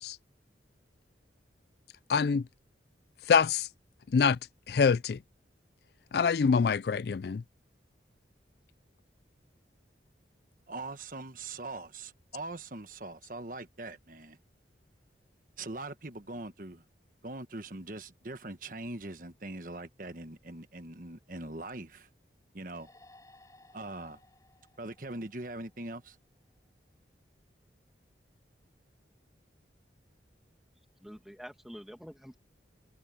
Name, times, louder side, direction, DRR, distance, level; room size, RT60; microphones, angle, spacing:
voice 1, 2.1-2.4 3.3-3.7 4.1-4.4 4.7-5.2 6.1-7.4, left 5 dB, 60° left, 0.4 m, -25 dB
voice 2, 10.7-14.4 15.6-16.8 17.2-22.1 22.5-22.9 23.7-24.2 24.8-26.2, right 2 dB, 45° right, 1.3 m, -42 dB
sound 1, 22.7-26.1, left 2 dB, 20° left, 4.4 m, -60 dB
voice 3, 31.0-32.4, equal, ahead, 2.1 m, -47 dB
head